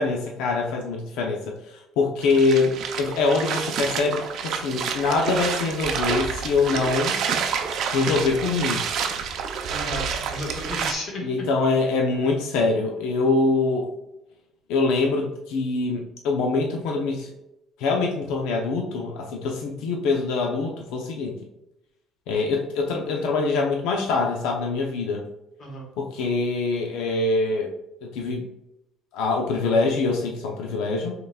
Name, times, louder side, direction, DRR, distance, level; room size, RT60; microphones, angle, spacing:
voice 1, 0.0-1.5 2.0-7.2 7.9-8.8 11.2-13.9 14.7-17.3 17.8-21.4 22.3-25.2 26.0-27.7 28.0-28.5 29.1-31.1, left 3 dB, 90° left, 1 dB, 0.7 m, -24 dB
sound 1, 2.2-10.9, right 6 dB, 55° right, 0.6 m, -28 dB
voice 2, 9.7-11.5 25.6-25.9, left 1 dB, 40° left, -1 dB, 1.5 m, -33 dB
5.5 x 4.0 x 2.3 m, 0.89 s
cardioid pair, 165°, 0 cm